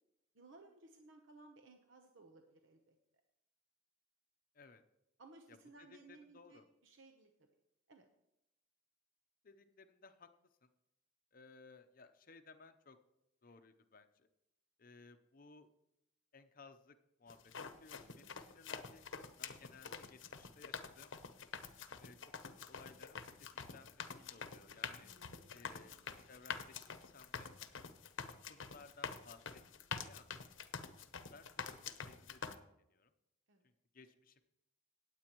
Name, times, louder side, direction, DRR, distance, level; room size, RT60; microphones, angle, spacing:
voice 1, 0.3-3.0 5.2-7.5 7.9-8.0 18.0-18.5 25.0-26.1 33.5-33.7, right 3 dB, 75° right, 4 dB, 0.9 m, -61 dB
voice 2, 5.5-6.6 9.4-10.3 10.6-10.7 11.3-13.0 13.4-14.3 14.8-15.7 16.3-21.1 22.0-22.2 22.6-23.3 23.7-25.1 25.5-26.0 26.3-27.5 28.5-29.6 29.9-30.3 31.3-32.4 32.9-33.1 33.9-34.4, left 4 dB, 45° left, 8 dB, 0.7 m, -60 dB
sound 1, 17.3-32.5, left 6 dB, 75° left, 0.8 m, -47 dB
18.5 x 8.2 x 3.0 m, 0.87 s
head